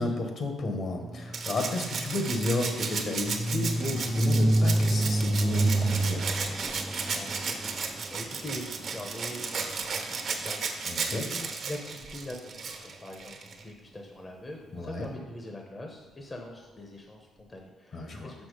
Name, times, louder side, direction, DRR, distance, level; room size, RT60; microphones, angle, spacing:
voice 1, 0.0-6.3 10.9-11.3 14.7-15.1 17.9-18.3, left 2 dB, 55° left, 3 dB, 1.4 m, -32 dB
sound 1, 1.0-10.9, right 1 dB, 5° right, 0.5 m, -30 dB
Rattle (instrument), 1.3-13.6 15.0-15.1, right 5 dB, 55° right, 1.0 m, -34 dB
voice 2, 7.1-18.5, left 1 dB, 25° left, 2 dB, 0.9 m, -43 dB
6.2 x 5.9 x 5.0 m, 1.2 s
cardioid pair, 90°, 0 cm